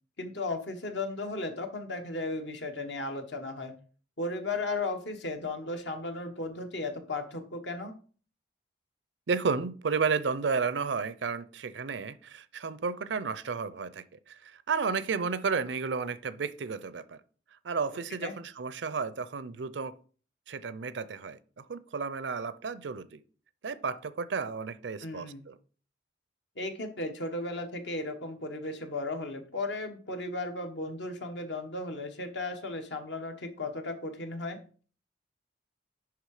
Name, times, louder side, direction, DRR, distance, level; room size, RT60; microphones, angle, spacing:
voice 1, 0.2-3.7 4.2-7.9 18.2-18.3 25.0-25.4 26.6-34.6, left 2 dB, 70° left, 1.3 m, -35 dB
voice 2, 9.3-17.2 17.6-20.0 20.5-21.4 21.7-23.2 23.6-25.6, right 5 dB, 75° right, 0.5 m, -32 dB
10.5 x 3.6 x 4.9 m
head